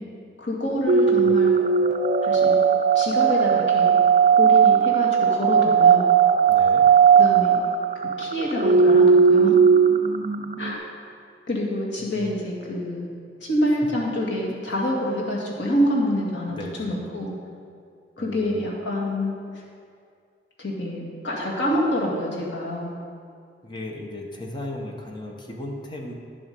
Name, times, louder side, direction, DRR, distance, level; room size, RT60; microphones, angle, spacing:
voice 1, 0.4-1.6 2.2-2.6 2.9-4.0 4.3-6.1 7.1-7.6 8.2-9.6 10.6-10.8 11.5-13.1 13.4-17.3 18.2-19.3 20.6-22.9, left 1 dB, 85° left, -3 dB, 2.2 m, -26 dB
sound 1, 0.9-10.7, right 6 dB, 45° right, 0.5 m, -17 dB
voice 2, 6.5-6.9 12.0-12.3 14.7-14.8 16.5-16.9 18.2-18.7 23.6-26.1, left 1 dB, 25° left, 0 dB, 1.1 m, -36 dB
10.5 x 7.4 x 5.3 m, 2.3 s
head